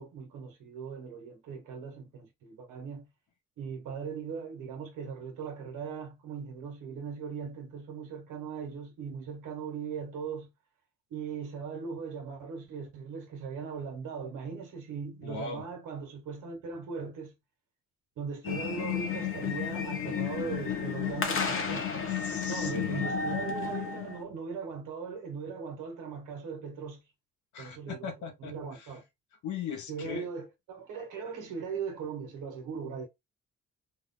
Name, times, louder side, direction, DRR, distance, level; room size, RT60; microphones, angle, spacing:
voice 1, 0.0-3.1 3.6-10.5 11.1-17.4 18.2-21.9 22.5-27.0 27.6-28.1 28.4-29.0 29.9-33.1, right 6 dB, 85° right, 1.2 m, -39 dB
voice 2, 15.2-15.6 22.2-23.1 27.5-28.9 29.4-30.3, left 7 dB, 70° left, 1.2 m, -39 dB
sound 1, 18.4-24.2, left 6 dB, 45° left, 1.1 m, -32 dB
3.2 x 2.3 x 3.7 m
cardioid pair, 90°, 30 cm